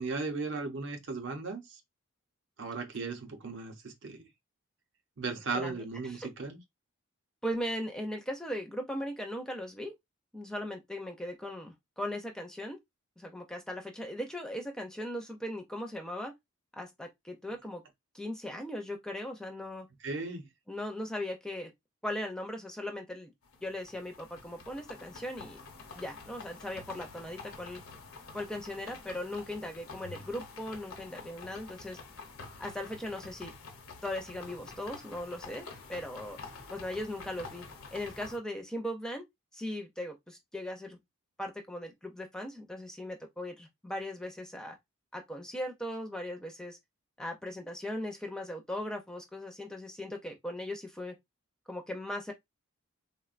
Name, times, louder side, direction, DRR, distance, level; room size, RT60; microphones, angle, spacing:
voice 1, 0.0-1.8 2.6-4.2 5.2-6.6 20.0-20.5, right 4 dB, 60° right, 0.6 m, -36 dB
voice 2, 5.5-6.3 7.4-9.9 10.3-12.8 13.2-16.3 16.7-17.8 18.1-19.9 20.7-21.7 22.0-23.3 23.6-25.6 26.0-27.8 28.3-32.0 32.6-33.5 34.0-36.4 36.7-37.6 37.9-39.2 39.5-41.0 41.4-44.8 45.1-46.8 47.2-51.1 51.7-52.3, left 1 dB, 5° left, 0.4 m, -38 dB
sound 1, 23.4-38.4, left 4 dB, 85° left, 0.8 m, -48 dB
3.5 x 2.1 x 2.4 m
head